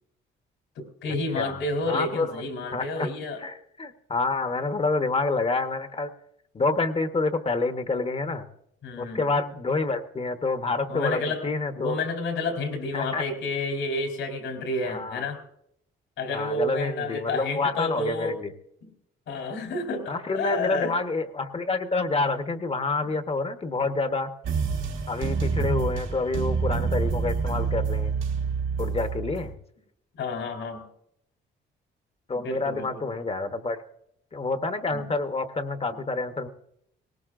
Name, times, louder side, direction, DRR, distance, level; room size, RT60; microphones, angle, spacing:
voice 1, 0.8-3.4 8.8-9.3 10.9-11.4 11.7-15.4 16.2-18.3 18.8-18.9 19.3-20.9 23.0-23.1 30.2-30.9 32.3-33.0 34.9-35.0 35.9-36.0, left 2 dB, 80° left, 4 dB, 3.5 m, -30 dB
voice 2, 1.9-2.3 2.7-3.1 3.4-6.1 6.5-8.5 9.0-11.9 12.9-13.2 14.8-15.3 16.3-18.5 20.1-24.3 25.1-28.2 28.8-29.5 32.3-33.8 34.3-36.5, left 3 dB, 30° left, 8 dB, 1.0 m, -28 dB
sound 1, 24.4-29.5, right 5 dB, 80° right, 2.0 m, -27 dB
18.5 x 18.0 x 2.5 m, 0.74 s
cardioid pair, 90°, 20 cm